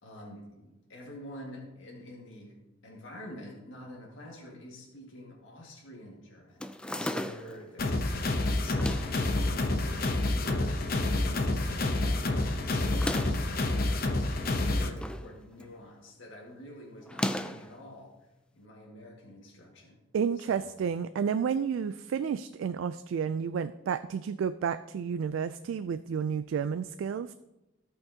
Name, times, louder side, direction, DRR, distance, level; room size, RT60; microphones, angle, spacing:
voice 1, 0.0-18.1 18.5-20.0 20.4-20.7, left 1 dB, 80° left, -2 dB, 1.8 m, -47 dB
sound 1, 6.6-7.6 8.6-9.2 10.0-10.7 11.0-11.1 11.3-11.4 12.8-13.5 14.5-15.3 15.6-15.9 17.1-17.7, left 1 dB, 5° left, 0.3 m, -35 dB
sound 2, 7.8-14.9, left 2 dB, 50° left, 0.7 m, -28 dB
voice 2, 20.1-27.3, right 7 dB, 80° right, 12 dB, 0.3 m, -31 dB
16.5 x 5.7 x 2.8 m, 0.99 s
head